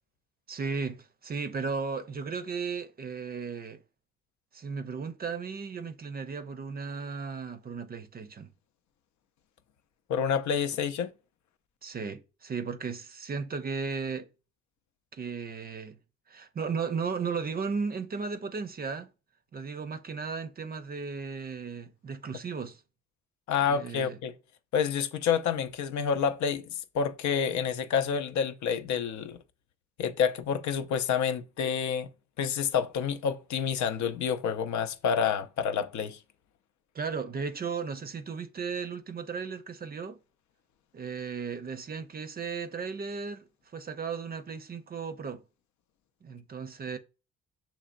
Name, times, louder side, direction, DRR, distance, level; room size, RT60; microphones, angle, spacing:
voice 1, 0.5-3.8 4.5-8.5 11.8-14.3 15.1-16.0 16.3-19.1 19.5-22.8 23.7-24.2 36.9-40.2 40.9-45.4 46.2-47.0, right 5 dB, 30° right, 0.5 m, -35 dB
voice 2, 10.1-11.1 23.5-24.3 24.7-29.4 30.0-32.1 32.4-36.2, left 7 dB, 70° left, 0.5 m, -28 dB
6.6 x 3.0 x 2.5 m
cardioid pair, 90°, 30 cm